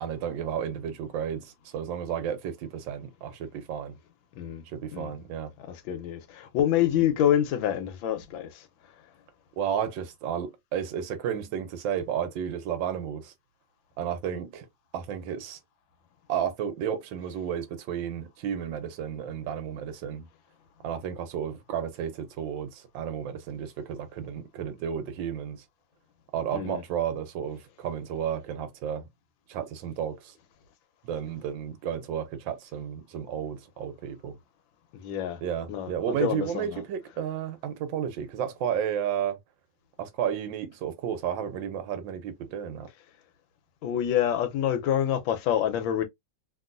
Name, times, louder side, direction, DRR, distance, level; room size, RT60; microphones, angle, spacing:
voice 1, 0.0-4.0 4.7-5.5 6.9-7.0 9.6-13.3 14.0-14.7 14.9-15.6 16.3-20.3 20.8-25.6 26.3-29.1 29.5-30.3 31.0-34.4 35.4-39.4 40.0-42.9, right 8 dB, 75° right, 1.4 m, -32 dB
voice 2, 5.7-8.6 26.5-26.8 34.9-35.4 35.7-36.8 43.8-46.0, left 10 dB, 85° left, 1.5 m, -27 dB
3.0 x 2.9 x 2.4 m
omnidirectional pair, 2.1 m